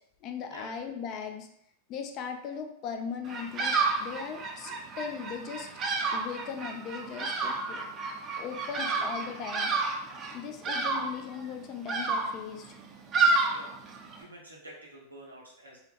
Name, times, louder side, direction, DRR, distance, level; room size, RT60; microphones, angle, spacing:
voice 1, 0.2-1.5 1.9-5.7 6.1-7.8 8.4-9.7 10.3-12.8, left 6 dB, 40° left, 5 dB, 0.4 m, -38 dB
Bird vocalization bird call bird song, 3.2-14.2, right 4 dB, 30° right, 0.4 m, -30 dB
voice 2, 14.1-15.8, right 1 dB, 85° right, -2 dB, 0.7 m, -48 dB
2.7 x 2.1 x 2.8 m, 0.74 s
figure-of-eight pair, 90°, 0 cm